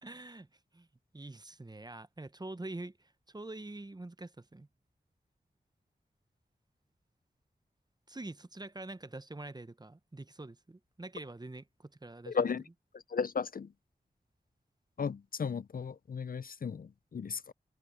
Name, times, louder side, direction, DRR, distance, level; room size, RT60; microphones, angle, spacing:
voice 1, 0.0-0.5 0.7-0.9 1.1-4.7 8.1-12.5, right 2 dB, 25° right, 0.8 m, -45 dB
voice 2, 12.3-12.6 13.1-13.7 15.0-17.5, left 6 dB, 55° left, 0.5 m, -35 dB
cardioid pair, 45°, 17 cm